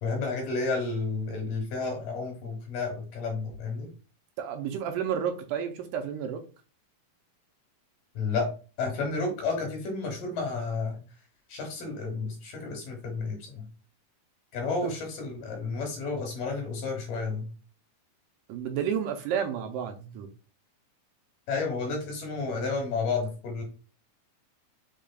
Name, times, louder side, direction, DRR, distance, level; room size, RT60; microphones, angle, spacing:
voice 1, 0.0-3.9 8.1-8.5 8.8-11.0 11.5-13.6 14.5-17.5 21.5-23.6, left 4 dB, 70° left, 2 dB, 2.8 m, -31 dB
voice 2, 4.4-6.4 18.5-20.3, right 8 dB, 80° right, 4 dB, 2.0 m, -31 dB
6.5 x 3.2 x 2.3 m, 0.35 s
omnidirectional pair, 4.2 m